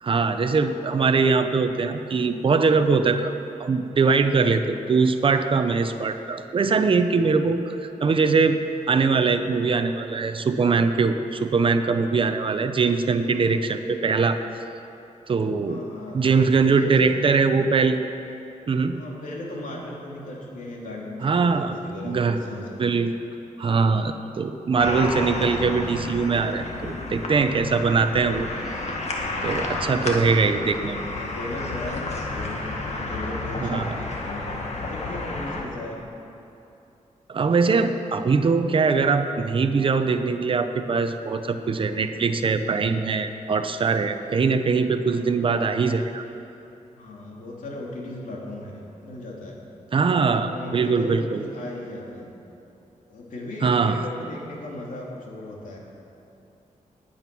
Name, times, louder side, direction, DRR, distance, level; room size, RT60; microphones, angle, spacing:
voice 1, 0.0-3.3 3.6-8.6 8.9-14.4 15.3-15.8 16.1-18.0 18.7-18.9 21.2-21.7 22.0-22.4 22.8-23.1 23.6-28.5 29.4-31.1 33.6-33.9 37.3-46.2 49.9-51.4 53.6-54.0, right 4 dB, 40° right, 8 dB, 0.8 m, -22 dB
voice 2, 13.3-13.8 15.7-16.4 16.7-17.3 18.9-22.8 30.0-30.8 31.1-34.5 34.8-36.0 45.1-45.3 46.9-49.6 50.0-52.3 53.1-55.8, left 1 dB, 85° left, -3 dB, 3.0 m, -37 dB
sound 1, 24.8-35.6, left 2 dB, 55° left, 1.8 m, -31 dB
20.0 x 8.9 x 6.1 m, 2.8 s
wide cardioid pair, 165°, 13 cm